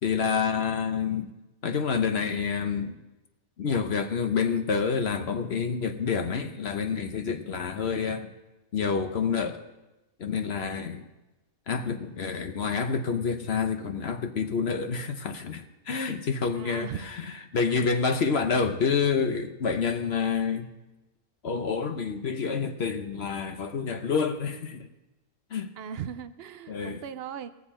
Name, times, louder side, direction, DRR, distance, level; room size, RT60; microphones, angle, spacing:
voice 1, 0.0-1.3 1.6-3.0 3.6-8.3 8.7-9.6 10.2-11.1 11.7-16.9 17.5-20.7 21.4-24.9 25.5-25.7 26.7-27.0, left 5 dB, 50° left, 6 dB, 1.0 m, -28 dB
voice 2, 16.5-17.1 25.8-27.5, right 8 dB, 65° right, 11 dB, 0.6 m, -38 dB
20.0 x 7.2 x 4.3 m, 1.0 s
omnidirectional pair, 1.6 m